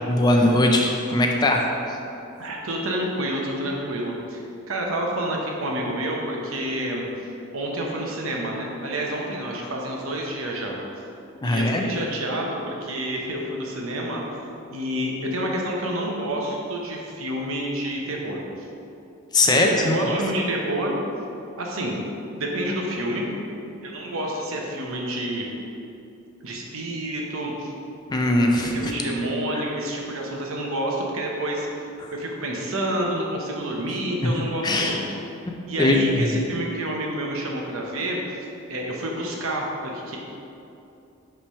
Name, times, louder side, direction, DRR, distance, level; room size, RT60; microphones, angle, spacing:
voice 1, 0.1-2.0 11.4-11.9 19.3-20.2 28.1-28.9 32.0-32.1 34.2-34.3 34.6-35.0 35.8-36.3, left 1 dB, 20° left, 2 dB, 0.4 m, -20 dB
voice 2, 2.4-4.4 4.7-7.0 7.5-10.8 11.4-14.4 14.7-18.7 19.4-20.9 21.6-22.0 22.4-23.3 23.8-25.5 26.4-27.7 28.6-31.7 32.1-35.0 35.7-38.2 38.7-40.2, right 1 dB, 70° right, -1 dB, 0.9 m, -28 dB
5.8 x 3.3 x 5.5 m, 2.7 s
head